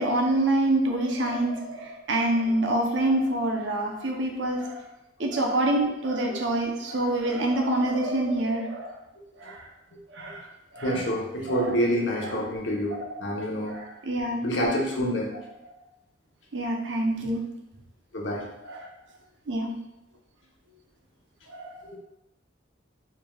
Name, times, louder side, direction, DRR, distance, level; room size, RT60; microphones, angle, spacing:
voice 1, 0.0-4.8 5.2-8.9 9.4-9.7 10.1-10.5 10.7-11.0 11.5-11.8 13.1-13.2 13.7-14.4 16.5-17.5 18.7-18.9 19.5-19.8 21.5-21.8, right 1 dB, 85° right, 1 dB, 0.7 m, -26 dB
voice 2, 10.8-13.7 14.4-15.3 18.1-18.5 21.9-22.0, equal, 85° left, -1 dB, 0.9 m, -27 dB
4.5 x 3.4 x 2.3 m, 0.88 s
head